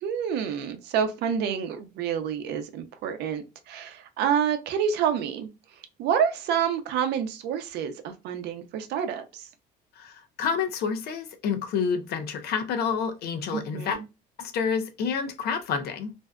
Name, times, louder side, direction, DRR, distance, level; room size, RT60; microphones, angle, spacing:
voice 1, 0.0-5.5 6.0-9.5 13.5-14.0, right 8 dB, 80° right, 0.5 m, -28 dB
voice 2, 10.0-14.0 14.4-16.1, left 6 dB, 70° left, 0.5 m, -29 dB
2.6 x 2.2 x 2.2 m
cardioid pair, 110°, 17 cm